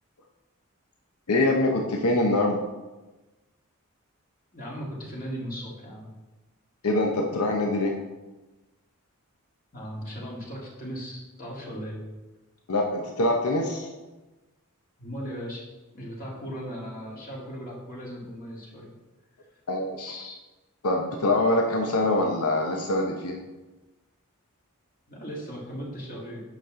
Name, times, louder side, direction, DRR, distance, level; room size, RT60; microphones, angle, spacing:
voice 1, 1.3-2.6 6.8-7.9 12.7-13.9 19.7-20.4 20.8-23.4, left 2 dB, 80° left, 1 dB, 0.8 m, -24 dB
voice 2, 4.5-6.1 9.7-12.0 15.0-15.6 15.9-18.9 25.1-26.4, equal, 40° left, -4 dB, 1.8 m, -37 dB
8.3 x 5.9 x 3.7 m, 1.1 s
head